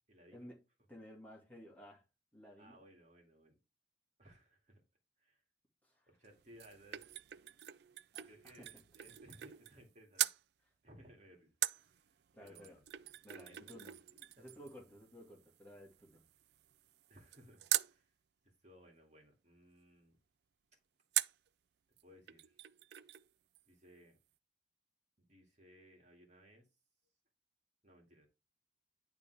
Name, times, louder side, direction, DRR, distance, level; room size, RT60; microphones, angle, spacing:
voice 1, 0.1-0.5 2.6-3.5 4.2-4.8 5.2-5.4 6.1-7.0 8.3-10.3 10.8-11.5 11.8-12.8 13.4-14.9 17.1-18.1 18.4-20.2 22.0-22.6 23.7-24.2 25.2-26.7 27.8-28.3, equal, 35° right, 2.2 m, -62 dB
voice 2, 0.9-2.0 2.3-2.8 5.8-6.1 8.1-8.8 12.3-12.8 13.2-13.9 14.4-16.2, equal, 10° left, 2.3 m, -55 dB
sound 1, 6.2-9.9 10.2-10.4 11.6-18.0 21.1-21.5 22.0-22.1 22.3-23.3 23.5-23.6, right 14 dB, 60° right, 0.4 m, -42 dB
10.5 x 3.6 x 4.7 m
head